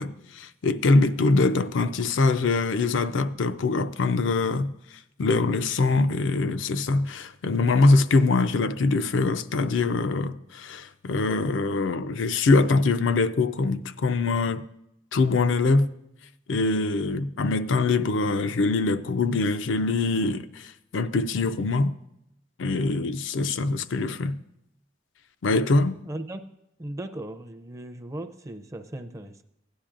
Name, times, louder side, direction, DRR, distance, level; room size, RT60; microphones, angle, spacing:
voice 1, 0.0-4.7 5.2-14.6 15.1-15.9 16.5-21.9 22.6-24.4 25.4-26.0, left 3 dB, 70° left, 0.4 m, -23 dB
voice 2, 26.0-26.4 26.8-29.4, right 1 dB, 15° right, 0.5 m, -37 dB
16.0 x 10.0 x 2.5 m
head